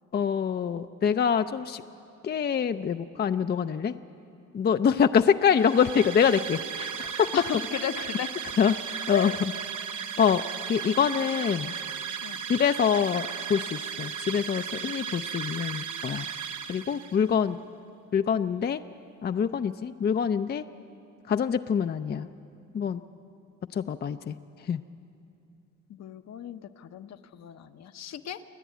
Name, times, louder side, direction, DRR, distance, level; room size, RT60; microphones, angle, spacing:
voice 1, 0.1-1.8 2.2-3.9 4.5-7.3 8.6-8.7 9.1-9.3 10.2-10.4 10.7-11.7 12.5-16.3 16.7-17.6 18.1-18.8 19.2-20.6 21.3-22.3 22.7-23.0 23.7-24.4 24.7-24.8, left 7 dB, 35° left, 9 dB, 0.5 m, -25 dB
sound 1, 5.5-17.3, right 7 dB, 80° right, 0.8 m, -36 dB
voice 2, 7.3-8.3 9.1-9.4 12.2-12.4 25.9-28.4, left 9 dB, 60° left, 9 dB, 0.9 m, -35 dB
28.5 x 10.0 x 9.3 m, 2.6 s
cardioid pair, 90°, 30 cm